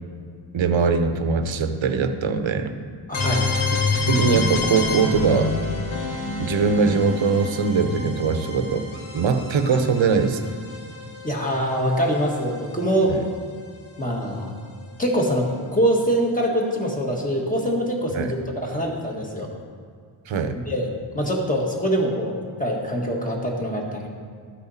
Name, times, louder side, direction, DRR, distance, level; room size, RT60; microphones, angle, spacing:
voice 1, 0.5-2.8 4.1-5.5 6.4-10.4 13.1-13.2 18.2-18.3 20.3-20.5, right 5 dB, 75° right, 8 dB, 0.9 m, -21 dB
sound 1, 3.1-12.9, left 3 dB, 85° left, 1.8 m, -28 dB
voice 2, 3.1-3.5 11.2-13.2 14.0-14.5 15.0-19.5 20.7-20.9 21.1-24.1, equal, 15° left, -1 dB, 1.7 m, -24 dB
12.5 x 8.8 x 4.1 m, 2.1 s
wide cardioid pair, 135°, 48 cm